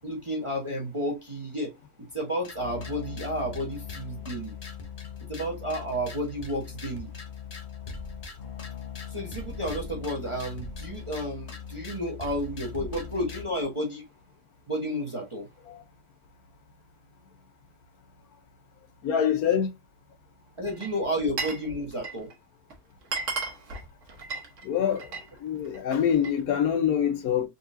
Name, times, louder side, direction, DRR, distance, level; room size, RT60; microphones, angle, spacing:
voice 1, 0.0-1.7 2.0-4.5 5.3-7.1 9.1-14.0 14.7-15.5 20.6-22.3, equal, 25° right, 0.8 m, -31 dB
sound 1, 2.4-13.4, left 6 dB, 55° left, 0.4 m, -40 dB
voice 2, 19.0-19.7 24.6-25.1 25.4-27.5, left 8 dB, 75° left, 1.0 m, -25 dB
Glass, 20.7-21.7 21.9-22.3 22.7-22.8 23.0-25.3 25.7-26.4, right 4 dB, 55° right, 1.2 m, -34 dB
3.9 x 2.7 x 2.5 m
omnidirectional pair, 1.7 m